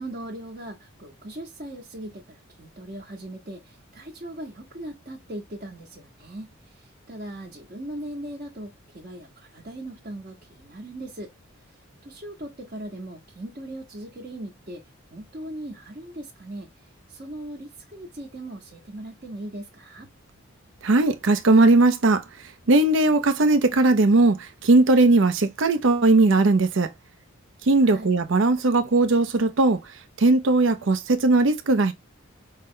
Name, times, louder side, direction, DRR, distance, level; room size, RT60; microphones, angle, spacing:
voice 1, 0.0-11.3 11.7-14.8 15.1-20.1 27.8-28.1, right 1 dB, 40° right, 0.9 m, -39 dB
voice 2, 20.8-22.2 22.7-26.9 27.7-29.8 30.2-31.9, right 2 dB, 60° right, 0.5 m, -18 dB
5.4 x 2.1 x 3.7 m
head